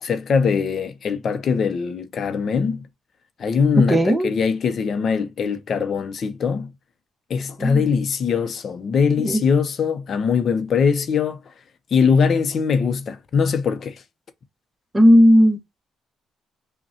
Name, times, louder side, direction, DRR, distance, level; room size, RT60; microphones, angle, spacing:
voice 1, 0.0-2.9 3.4-6.7 7.3-11.4 11.9-14.0, left 6 dB, 55° left, 0.6 m, -21 dB
voice 2, 3.9-4.3 7.6-7.9 9.2-9.4 14.9-15.6, equal, 15° right, 0.9 m, -15 dB
5.2 x 2.2 x 2.7 m
cardioid pair, 90°, 0 cm